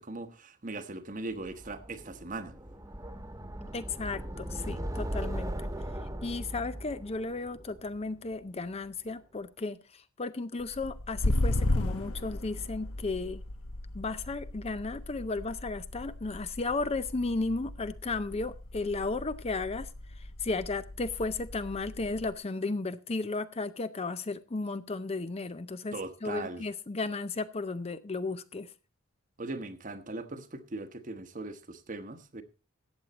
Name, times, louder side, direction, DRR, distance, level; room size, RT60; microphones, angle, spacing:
voice 1, 0.0-2.5 25.9-26.6 29.4-32.4, right 2 dB, 40° right, 1.1 m, -39 dB
sound 1, 1.4-8.5, equal, 15° right, 1.3 m, -39 dB
voice 2, 3.7-5.7 6.2-13.4 13.9-28.7, left 3 dB, 30° left, 0.5 m, -34 dB
sound 2, 10.6-22.4, left 2 dB, 80° left, 1.0 m, -36 dB
14.0 x 9.0 x 4.1 m
head